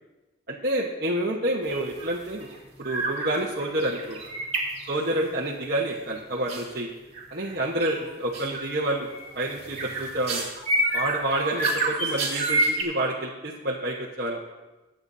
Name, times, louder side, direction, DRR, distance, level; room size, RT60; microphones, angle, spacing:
voice 1, 0.5-2.5 2.8-4.2 4.9-6.9 7.3-9.1 9.3-10.4 10.9-14.4, right 1 dB, 55° right, -4 dB, 1.2 m, -28 dB
sound 1, 1.7-2.1 2.3-2.6 2.8-3.3 3.6-5.3 6.5-6.6 7.1-7.5 7.8-8.0 8.3-8.7 9.1-12.8, right 2 dB, 40° right, 3.1 m, -28 dB
22.0 x 9.0 x 2.7 m, 1.1 s
head